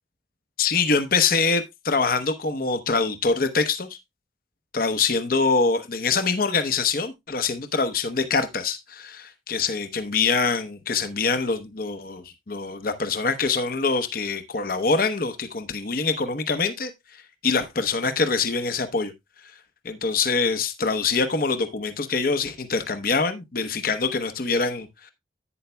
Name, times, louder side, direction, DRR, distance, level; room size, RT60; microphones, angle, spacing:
voice 1, 0.6-4.0 4.7-19.1 19.4-19.5 19.8-25.1, left 4 dB, 50° left, 0.8 m, -24 dB
11.0 x 9.2 x 2.2 m
head